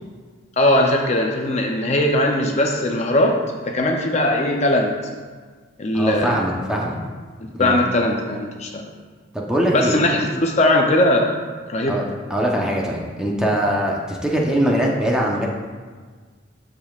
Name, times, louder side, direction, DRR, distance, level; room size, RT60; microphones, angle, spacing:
voice 1, 0.6-3.4 3.6-4.9 5.8-6.4 7.6-8.8 9.7-11.4 11.7-12.0, left 1 dB, 35° left, 1 dB, 0.6 m, -19 dB
voice 2, 5.9-7.0 7.5-7.8 9.3-10.0 11.9-12.0 12.3-15.5, right 1 dB, 5° right, -2 dB, 0.8 m, -22 dB
13.5 x 5.2 x 2.4 m, 1.5 s
head